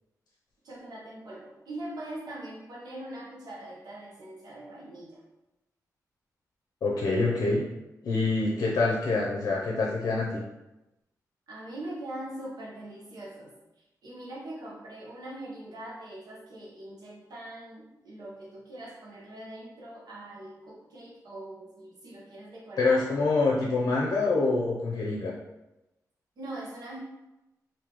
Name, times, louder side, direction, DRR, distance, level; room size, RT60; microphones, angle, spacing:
voice 1, 0.6-5.2 11.5-13.5 14.0-23.0 26.4-27.0, right 1 dB, 90° right, -4 dB, 1.0 m, -42 dB
voice 2, 6.8-7.6 8.0-10.4 22.8-25.3, left 3 dB, 85° left, -2 dB, 0.6 m, -26 dB
3.6 x 2.7 x 3.0 m, 0.97 s
wide cardioid pair, 110°, 7 cm